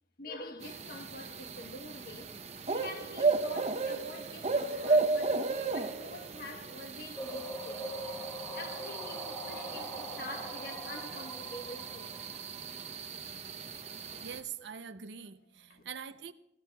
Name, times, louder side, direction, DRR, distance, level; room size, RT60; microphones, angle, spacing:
voice 1, 0.2-2.3 2.7-8.0 8.5-12.2 14.6-14.7 15.7-15.8, left 2 dB, 55° left, 1.1 m, -46 dB
sound 1, 0.6-14.4, right 3 dB, 35° right, 0.7 m, -35 dB
sound 2, 7.2-12.9, equal, 10° left, 1.9 m, -43 dB
voice 2, 14.2-16.3, right 7 dB, 75° right, 0.6 m, -44 dB
21.5 x 16.5 x 2.3 m
head